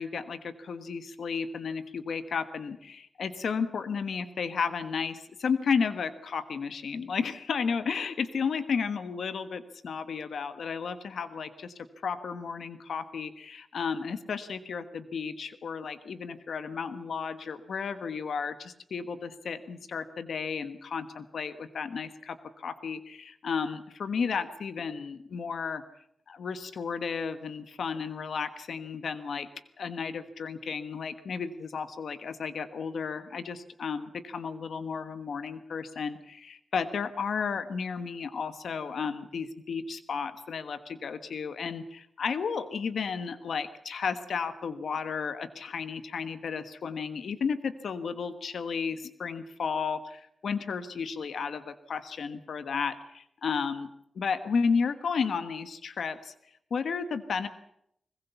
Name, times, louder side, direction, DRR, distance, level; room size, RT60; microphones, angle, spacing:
voice 1, 0.0-11.7 12.0-25.8 26.3-29.5 29.8-53.9 54.1-56.3 56.7-57.5, left 5 dB, 80° left, 11 dB, 1.3 m, -33 dB
21.5 x 20.5 x 7.0 m, 0.75 s
cardioid pair, 80°, 0 cm